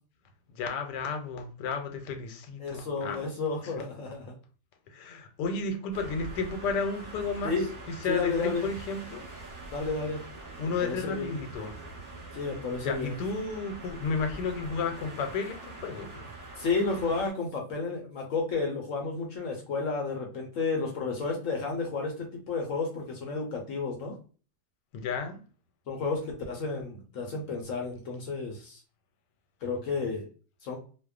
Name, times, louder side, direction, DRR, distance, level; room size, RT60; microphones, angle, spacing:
voice 1, 0.5-3.2 4.9-7.5 7.9-9.3 10.6-11.8 12.8-16.3 24.9-25.4, left 4 dB, 85° left, 1.2 m, -32 dB
voice 2, 2.6-4.3 7.4-7.7 8.1-8.7 9.7-10.2 10.8-11.3 12.3-13.1 16.6-24.2 25.9-28.8 29.6-30.2 30.6-30.8, left 4 dB, 65° left, 0.8 m, -32 dB
sound 1, 5.9-17.3, right 2 dB, 15° right, 0.6 m, -44 dB
2.8 x 2.1 x 2.3 m
omnidirectional pair, 1.8 m